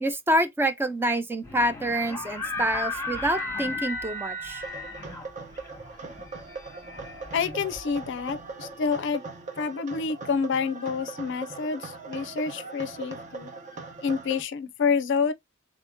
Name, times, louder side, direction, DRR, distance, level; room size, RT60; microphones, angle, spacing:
voice 1, 0.0-4.6, right 1 dB, 10° right, 0.4 m, -27 dB
sound 1, 1.4-8.3, left 2 dB, 15° left, 1.0 m, -35 dB
sound 2, 4.6-14.4, right 4 dB, 40° right, 0.8 m, -40 dB
voice 2, 7.3-9.2 9.6-13.5 14.0-15.3, left 5 dB, 65° left, 0.5 m, -28 dB
3.6 x 2.7 x 3.5 m
head